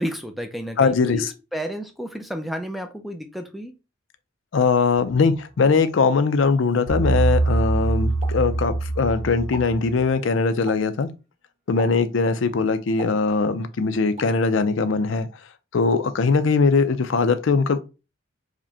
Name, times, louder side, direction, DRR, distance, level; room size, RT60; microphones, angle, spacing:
voice 1, 0.0-3.7, equal, ahead, 0.4 m, -31 dB
voice 2, 0.8-1.3 4.5-11.1 11.7-15.3 15.7-17.8, left 4 dB, 75° left, 0.5 m, -21 dB
sound 1, 6.9-10.0, right 2 dB, 75° right, 0.9 m, -23 dB
Explosion, 8.2-9.1 9.4-9.8 10.7-11.0 11.8-12.2 13.0-13.7 14.2-14.4, right 4 dB, 35° right, 1.3 m, -40 dB
4.8 x 2.2 x 2.7 m
head